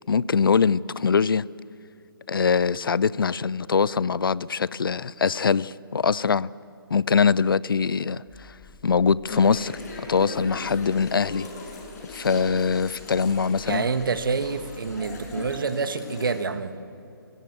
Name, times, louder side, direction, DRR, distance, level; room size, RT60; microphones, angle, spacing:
voice 1, 0.1-1.4 2.3-6.5 6.9-8.5 8.8-9.7 10.0-11.5 12.1-13.8, left 5 dB, 70° left, 21 dB, 0.5 m, -23 dB
sound 1, 8.3-15.6, left 6 dB, 15° left, 1.9 m, -50 dB
sound 2, 9.2-16.5, left 2 dB, 45° left, 6.5 m, -39 dB
voice 2, 13.6-16.8, right 4 dB, 65° right, 11 dB, 1.4 m, -27 dB
23.5 x 18.5 x 8.2 m, 2.7 s
figure-of-eight pair, 140°, 12 cm